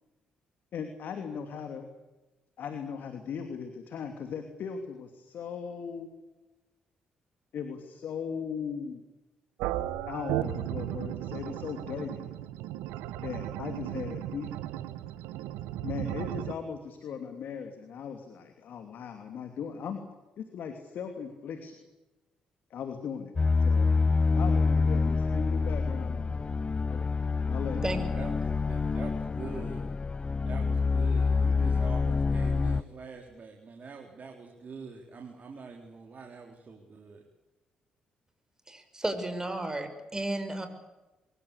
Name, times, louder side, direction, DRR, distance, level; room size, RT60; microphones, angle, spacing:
voice 1, 0.7-1.9 2.6-6.2 7.5-9.0 10.1-12.2 13.2-14.5 15.8-20.0 20.4-21.7 22.7-23.3 23.6-23.9 24.3-26.4 26.9-27.1 27.5-27.9, left 7 dB, 60° left, 6 dB, 2.9 m, -38 dB
sound 1, 9.6-16.5, right 13 dB, 75° right, 1.1 m, -35 dB
sound 2, 23.4-32.8, left 4 dB, 30° left, 0.9 m, -27 dB
voice 2, 27.7-29.8 30.4-37.3, right 5 dB, 45° right, 2 dB, 4.0 m, -44 dB
voice 3, 38.7-40.7, right 1 dB, 15° right, 8 dB, 6.1 m, -33 dB
24.5 x 22.5 x 8.4 m, 1.1 s
hypercardioid pair, 45°, 3 cm